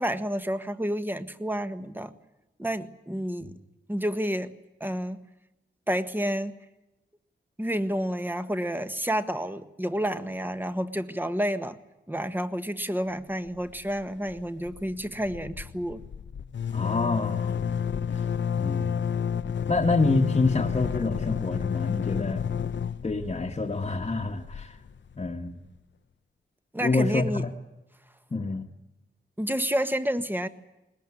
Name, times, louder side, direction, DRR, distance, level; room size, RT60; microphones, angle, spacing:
voice 1, 0.0-2.1 2.6-3.5 3.9-4.5 4.8-5.2 5.9-6.5 7.6-11.8 12.1-16.0 26.7-27.4 29.4-30.5, equal, 10° right, 10 dB, 1.6 m, -29 dB
sound 1, 13.5-14.0 14.3-14.4 14.6-25.3, left 7 dB, 70° left, 0.8 m, -30 dB
voice 2, 16.7-17.5 18.1-18.2 18.6-18.9 19.7-22.5 23.0-24.8 25.2-25.6 26.8-27.5 28.3-28.7, left 3 dB, 30° left, 0 dB, 1.6 m, -27 dB
21.0 x 21.0 x 10.0 m, 0.95 s
wide cardioid pair, 115°, 20 cm